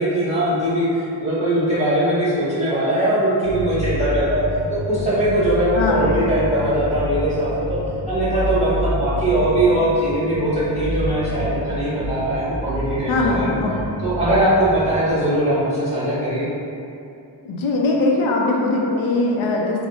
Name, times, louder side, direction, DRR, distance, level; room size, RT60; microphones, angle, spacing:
voice 1, 0.0-7.8 8.1-13.6 14.0-16.5, right 1 dB, 15° right, -11 dB, 1.4 m, -20 dB
sound 1, 3.4-15.0, equal, 60° right, 0.5 m, -28 dB
voice 2, 5.7-6.1 13.1-13.8 17.5-19.9, left 2 dB, 90° left, -1 dB, 0.6 m, -20 dB
3.5 x 2.1 x 3.4 m, 2.7 s
wide cardioid pair, 85°, 47 cm